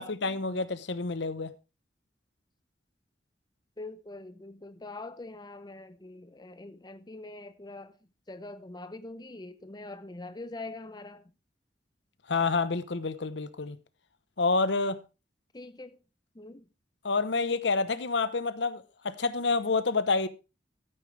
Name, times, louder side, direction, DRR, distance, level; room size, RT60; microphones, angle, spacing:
voice 1, 0.0-1.5 12.3-13.8 14.4-15.0 17.0-20.3, left 4 dB, 80° left, 0.9 m, -28 dB
voice 2, 3.8-8.0 8.3-11.2 15.5-16.0 16.3-16.6, left 2 dB, 25° left, 0.6 m, -43 dB
13.0 x 8.7 x 3.3 m
head